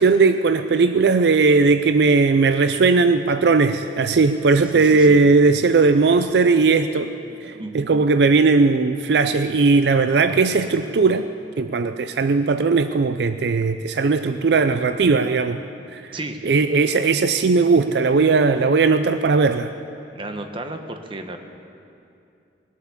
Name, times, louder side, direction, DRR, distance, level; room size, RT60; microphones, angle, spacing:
voice 1, 0.0-7.1 7.4-11.3 11.6-15.6 15.9-16.1 16.4-19.7, right 4 dB, 65° right, 9 dB, 0.4 m, -18 dB
voice 2, 4.7-5.2 7.2-8.0 16.1-16.4 20.1-21.4, right 2 dB, 30° right, 5 dB, 1.0 m, -34 dB
20.0 x 8.1 x 7.1 m, 2.6 s
head